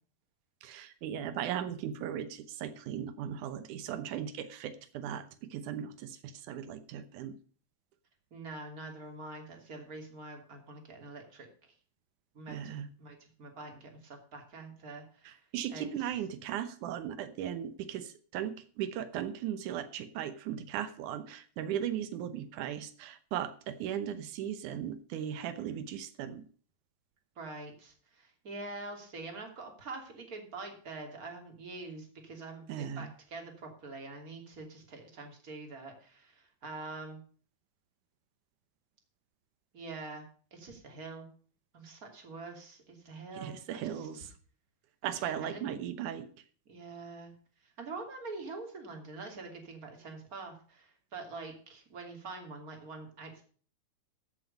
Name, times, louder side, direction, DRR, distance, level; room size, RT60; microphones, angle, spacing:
voice 1, 0.6-7.4 12.5-12.9 15.3-26.4 32.7-33.1 43.3-44.3 45.0-46.3, right 10 dB, 90° right, 11 dB, 2.5 m, -37 dB
voice 2, 8.3-11.7 12.3-15.4 15.7-15.9 27.4-37.2 39.7-40.3 40.5-41.3 41.7-44.3 45.0-45.8 46.7-47.3 47.6-53.4, right 3 dB, 30° right, 3 dB, 3.1 m, -45 dB
14.0 x 7.8 x 5.4 m, 0.43 s
omnidirectional pair, 3.4 m